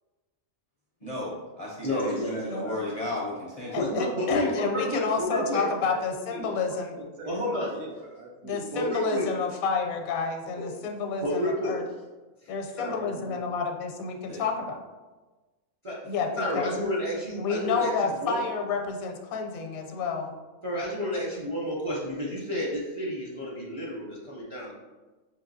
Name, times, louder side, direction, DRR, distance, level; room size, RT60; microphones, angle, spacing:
voice 1, 1.0-3.8 14.3-14.5, left 1 dB, 40° left, -5 dB, 0.5 m, -34 dB
voice 2, 1.8-3.0 3.7-5.6 7.3-7.7 8.7-9.3 10.6-10.7 11.2-11.8 12.4-13.0 15.8-16.0 16.3-18.4 19.8-19.9 20.6-24.7, left 1 dB, 40° right, -6 dB, 0.4 m, -31 dB
voice 3, 3.7-6.9 8.4-11.8 12.5-14.8 16.1-16.7 17.4-20.3, left 4 dB, 80° left, 3 dB, 1.0 m, -30 dB
voice 4, 5.3-9.2 12.9-13.4, right 2 dB, 70° right, 1 dB, 1.0 m, -42 dB
4.8 x 2.8 x 2.6 m, 1.2 s
omnidirectional pair, 1.5 m